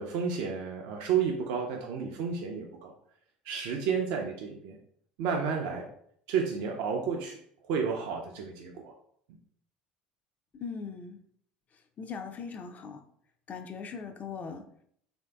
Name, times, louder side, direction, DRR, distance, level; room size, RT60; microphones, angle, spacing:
voice 1, 0.0-2.9 3.5-4.8 5.2-5.9 6.3-7.4 7.6-8.9, right 6 dB, 65° right, 1 dB, 0.4 m, -31 dB
voice 2, 10.5-11.2 12.0-13.0 13.5-14.6, left 5 dB, 35° left, 6 dB, 0.4 m, -39 dB
3.1 x 2.6 x 2.3 m, 0.66 s
hypercardioid pair, 70°, 4 cm